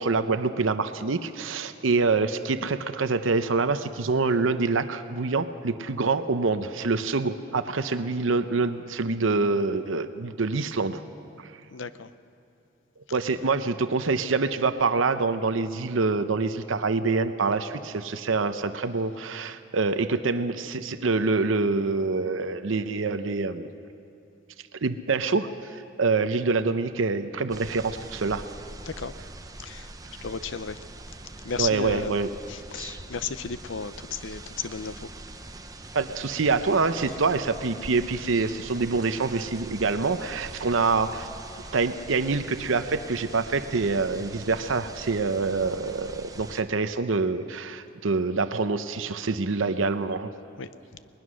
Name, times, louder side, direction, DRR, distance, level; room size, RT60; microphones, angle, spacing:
voice 1, 0.0-11.0 11.4-11.5 13.1-23.7 24.8-28.4 31.6-32.3 35.9-41.3 41.7-50.3, right 4 dB, 80° right, 10 dB, 0.7 m, -26 dB
voice 2, 11.7-12.1 13.1-13.2 28.8-29.1 29.6-29.9 30.2-30.8 31.4-35.1 37.0-37.2 50.6-50.7, left 6 dB, 80° left, 13 dB, 0.7 m, -34 dB
sound 1, 27.5-46.6, right 2 dB, 20° right, 0.8 m, -43 dB
21.0 x 20.0 x 6.3 m, 2.8 s
head